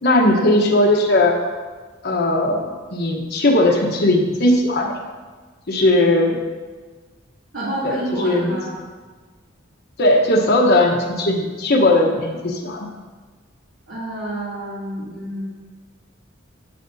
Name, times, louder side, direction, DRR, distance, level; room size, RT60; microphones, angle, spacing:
voice 1, 0.0-1.5 2.0-5.0 5.7-6.4 7.8-8.0 8.2-8.6 10.0-12.9, left 1 dB, 55° left, 0 dB, 1.0 m, -18 dB
voice 2, 7.5-8.7 13.9-15.4, right 1 dB, 90° right, -11 dB, 2.7 m, -28 dB
10.5 x 9.0 x 2.7 m, 1.4 s
head